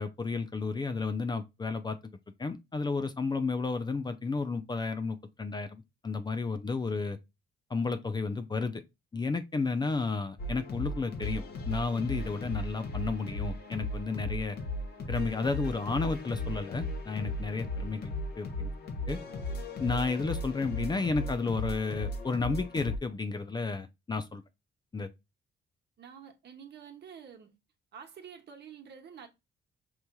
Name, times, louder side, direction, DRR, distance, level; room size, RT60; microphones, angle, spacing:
voice 1, 0.0-2.0 2.4-7.2 7.7-8.8 9.1-14.6 15.1-18.7 19.1-19.2 19.8-24.4 24.9-25.1, left 4 dB, 20° left, 0.4 m, -32 dB
sound 1, 10.4-23.0, left 1 dB, 55° left, 1.0 m, -36 dB
voice 2, 26.0-27.5 27.9-29.3, right 7 dB, 60° right, 1.1 m, -48 dB
5.2 x 3.1 x 2.2 m
cardioid pair, 90°, 20 cm